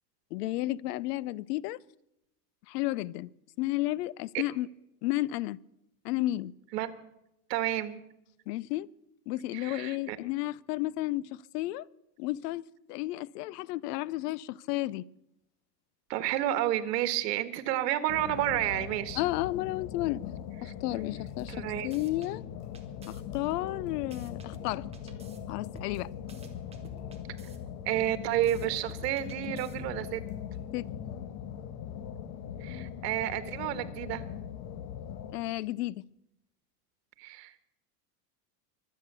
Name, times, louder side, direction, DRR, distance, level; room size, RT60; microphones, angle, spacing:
voice 1, 0.3-1.8 2.7-3.3 3.6-4.7 5.0-5.6 6.0-6.5 8.5-8.9 9.3-11.9 12.2-12.6 12.9-15.0 19.2-20.2 20.6-22.4 23.1-24.9 25.5-26.1 30.7-30.8 35.3-36.0, left 17 dB, 75° left, 0.7 m, -32 dB
voice 2, 7.5-8.0 9.5-10.2 16.1-19.2 20.6-20.7 21.5-21.9 27.8-30.2 32.6-34.2 37.2-37.6, right 13 dB, 90° right, 1.7 m, -30 dB
sound 1, 18.1-35.4, left 9 dB, 50° left, 1.4 m, -41 dB
sound 2, 21.4-22.3 22.7-25.4 25.7-27.6 27.9-30.1, right 4 dB, 10° right, 1.7 m, -52 dB
24.0 x 8.7 x 6.8 m
supercardioid pair, 165°, 48 cm